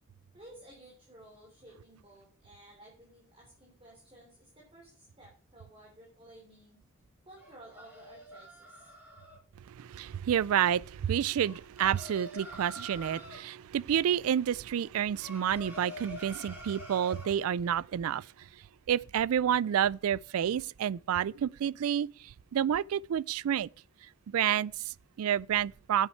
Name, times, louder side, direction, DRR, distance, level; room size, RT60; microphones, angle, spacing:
voice 1, 0.3-6.8 7.2-8.9, right 1 dB, 25° right, 3.6 m, -55 dB
sound 1, 7.4-9.4 11.4-13.4 15.2-17.3, equal, 10° right, 6.0 m, -46 dB
voice 2, 9.7-18.5 18.9-23.7 24.3-26.1, right 9 dB, 90° right, 0.3 m, -29 dB
9.3 x 9.1 x 4.4 m
head